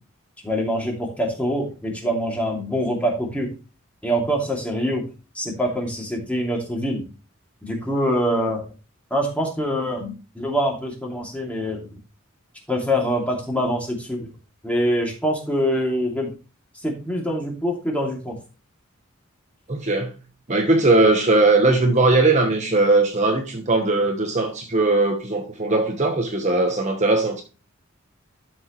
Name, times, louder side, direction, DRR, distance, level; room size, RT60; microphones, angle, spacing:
voice 1, 0.4-3.5 4.0-5.0 5.3-7.0 7.6-8.6 9.1-11.9 12.7-14.3 14.6-16.3 16.8-18.4, equal, 5° left, 2.5 m, -24 dB
voice 2, 19.7-20.1 20.5-27.4, right 2 dB, 35° right, 1.1 m, -19 dB
12.0 x 6.1 x 3.1 m
head